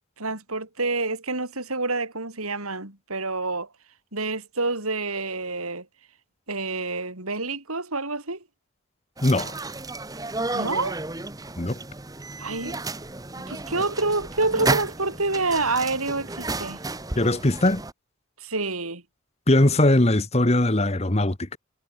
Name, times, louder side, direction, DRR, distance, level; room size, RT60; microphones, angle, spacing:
voice 1, 0.2-3.7 4.1-5.8 6.5-8.4 10.5-11.0 12.4-12.8 13.5-16.8 18.4-19.0, right 3 dB, 90° right, 6.7 m, -27 dB
voice 2, 9.2-9.5 11.6-11.8 17.2-17.8 19.5-21.6, left 1 dB, 30° left, 1.3 m, -20 dB
sound 1, 9.2-17.9, right 3 dB, 15° right, 1.0 m, -32 dB
head